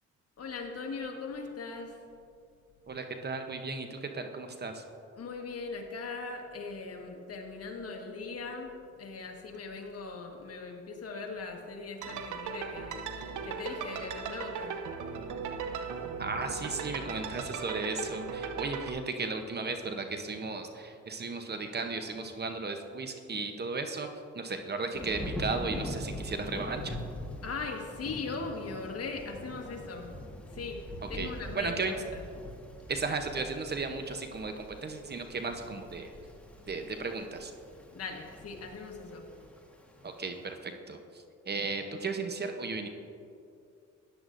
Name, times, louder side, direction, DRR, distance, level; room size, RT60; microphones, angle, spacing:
voice 1, 0.4-2.0 5.2-14.8 27.4-30.1 30.5-32.2 37.9-39.3, left 4 dB, 50° left, 2 dB, 1.5 m, -40 dB
voice 2, 2.9-4.8 16.2-24.1 24.3-27.0 31.1-31.9 32.9-36.1 36.7-37.5 40.0-42.9, right 4 dB, 35° right, 6 dB, 0.8 m, -35 dB
sound 1, 12.0-18.9, right 5 dB, 80° right, 0.8 m, -38 dB
Thunder / Rain, 24.9-40.5, equal, 5° left, 1.4 m, -43 dB
13.5 x 9.8 x 2.6 m, 2.4 s
cardioid pair, 90°, 30 cm